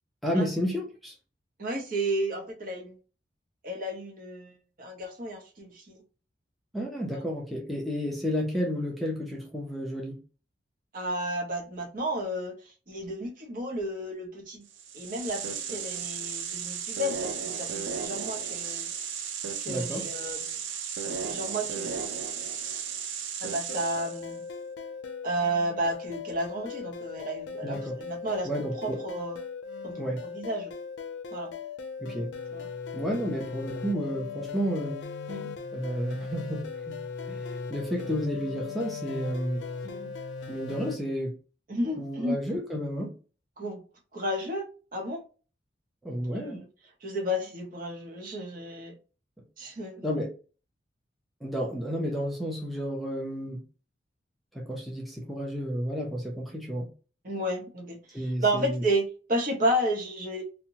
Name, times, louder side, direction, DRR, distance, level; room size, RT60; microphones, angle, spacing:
voice 1, 0.2-1.1 6.7-10.2 19.7-20.1 27.6-28.0 28.4-29.0 30.0-30.2 32.0-32.3 32.9-35.0 35.7-39.6 40.5-41.3 42.0-43.1 46.0-46.6 50.0-50.3 51.4-53.6 54.5-56.9 58.1-58.9, equal, ahead, 0.5 m, -31 dB
voice 2, 1.6-2.9 3.6-6.0 10.9-12.5 12.9-14.6 14.9-18.9 19.6-20.6 21.0-22.0 23.4-24.4 25.2-28.5 28.7-29.4 29.8-29.9 30.3-30.7 31.3-31.5 32.5-32.7 35.3-35.5 39.8-40.1 41.7-42.4 43.6-43.8 44.1-44.6 44.9-45.2 46.4-46.6 47.0-48.9 49.6-50.0 57.2-60.4, right 1 dB, 50° right, 0.8 m, -32 dB
sound 1, 14.7-24.3, right 7 dB, 85° right, 0.4 m, -34 dB
sound 2, 23.7-41.0, left 5 dB, 75° left, 0.4 m, -38 dB
2.8 x 2.1 x 2.7 m
head